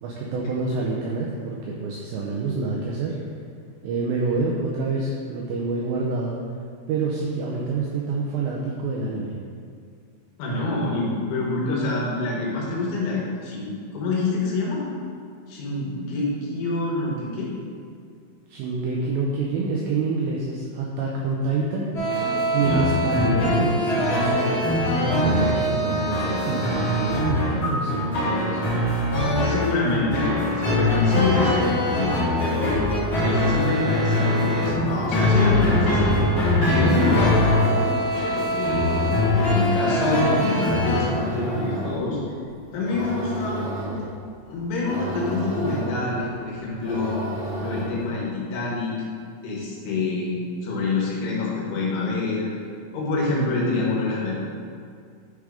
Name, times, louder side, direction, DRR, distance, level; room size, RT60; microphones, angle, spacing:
voice 1, 0.0-3.2 3.8-6.3 6.9-9.3 18.5-21.9 22.5-28.7, right 3 dB, 85° right, -3 dB, 2.5 m, -27 dB
voice 2, 10.4-14.8 15.5-17.5 22.6-22.9 29.4-30.3 30.6-32.8 33.2-37.4 38.3-39.0 39.3-42.2 42.7-43.7 44.4-47.2 47.6-48.9 49.4-50.4 50.6-52.5 52.9-54.4, left 3 dB, 75° left, -4 dB, 3.7 m, -26 dB
sound 1, 21.9-41.0, left 1 dB, 55° left, 1.3 m, -22 dB
sound 2, 30.8-48.2, right 1 dB, 70° right, 1.4 m, -33 dB
10.0 x 3.7 x 4.9 m, 2.3 s
omnidirectional pair, 5.8 m